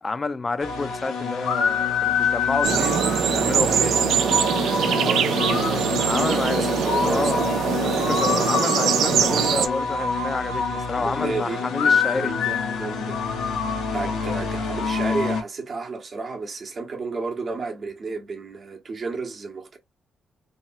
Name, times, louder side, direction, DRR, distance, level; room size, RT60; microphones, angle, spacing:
voice 1, 0.0-4.0 5.9-6.7 7.0-7.4 7.8-12.3, left 3 dB, 35° left, 0.4 m, -29 dB
sound 1, 0.6-15.4, left 5 dB, 90° left, 0.7 m, -26 dB
sound 2, 2.6-9.7, right 8 dB, 80° right, 0.3 m, -22 dB
voice 2, 5.0-7.5 10.9-13.5 13.9-19.8, right 3 dB, 50° right, 1.0 m, -32 dB
3.0 x 2.3 x 2.8 m
cardioid pair, 65°, 0 cm